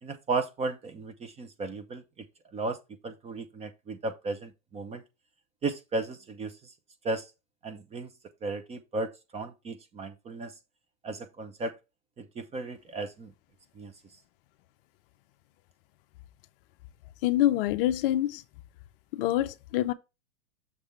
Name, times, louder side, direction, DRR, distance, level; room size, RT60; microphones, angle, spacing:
voice 1, 0.0-2.3 2.5-2.8 3.0-5.0 5.6-6.7 7.0-7.3 7.6-8.1 8.4-10.5 11.0-11.7 12.2-13.3 13.8-13.9, right 3 dB, 15° right, 0.7 m, -35 dB
voice 2, 17.2-18.4 19.1-19.9, left 13 dB, 45° left, 0.6 m, -26 dB
6.7 x 3.4 x 5.7 m
hypercardioid pair, 125°, 39 cm